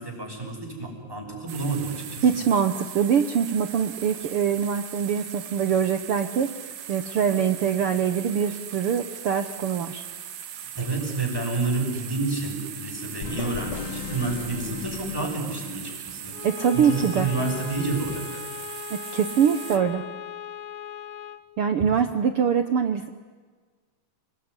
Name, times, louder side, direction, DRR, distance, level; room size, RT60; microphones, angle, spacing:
voice 1, 0.0-2.3 10.7-16.4 16.7-18.8 21.8-21.9, right 3 dB, 5° right, 2 dB, 6.1 m, -29 dB
sound 1, 1.5-19.8, right 9 dB, 90° right, 3.5 m, -39 dB
voice 2, 2.2-6.5 6.9-10.0 16.4-17.3 18.9-20.0 21.6-23.1, right 7 dB, 70° right, 9 dB, 1.3 m, -23 dB
sound 2, 13.2-16.0, left 8 dB, 75° left, 1.2 m, -37 dB
Bowed string instrument, 16.3-21.5, left 10 dB, 55° left, 1.6 m, -38 dB
29.5 x 20.5 x 9.8 m, 1.5 s
omnidirectional pair, 3.9 m